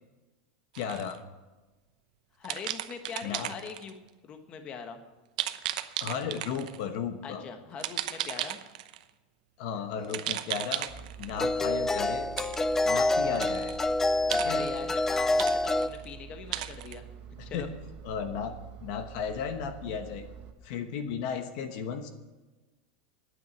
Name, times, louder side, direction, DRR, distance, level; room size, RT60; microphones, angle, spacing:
sound 1, 0.7-1.2 2.4-3.9 5.4-6.8 7.8-9.0 10.0-11.4 12.4-12.8 13.3-13.9 14.3-15.1 15.4-16.1 16.5-17.0, right 13 dB, 70° right, 0.8 m, -35 dB
voice 1, 0.8-1.2 3.2-3.5 6.0-7.4 9.6-10.9 11.2-12.3 12.9-13.8 14.3-14.6 17.4-17.7 18.0-18.5 18.8-20.3 20.6-22.1, left 7 dB, 50° left, 7 dB, 1.1 m, -34 dB
voice 2, 2.4-4.0 4.2-5.0 7.2-8.6 14.4-17.0 17.4-17.7, left 6 dB, 25° left, 7 dB, 1.2 m, -42 dB
sound 2, 10.0-10.1 11.4-15.9, left 2 dB, 10° left, 0.4 m, -27 dB
Engine, 10.9-20.5, right 7 dB, 35° right, 1.3 m, -47 dB
9.5 x 9.2 x 9.2 m, 1.2 s
supercardioid pair, 165°, 4 cm